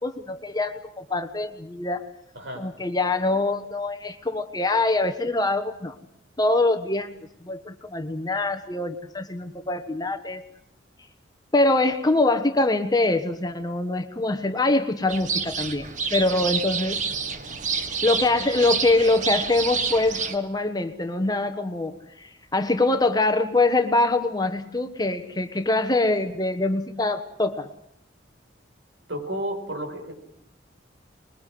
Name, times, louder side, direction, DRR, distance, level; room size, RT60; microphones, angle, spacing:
voice 1, 0.0-2.1 2.6-5.9 6.4-7.1 7.4-10.4 11.5-17.0 18.0-27.7, left 2 dB, 20° left, 8 dB, 1.2 m, -24 dB
voice 2, 2.3-2.7 29.1-30.1, right 1 dB, 70° right, 4 dB, 5.9 m, -32 dB
sound 1, 15.1-20.3, right 5 dB, 40° right, 1.4 m, -28 dB
25.5 x 21.5 x 7.7 m, 0.70 s
head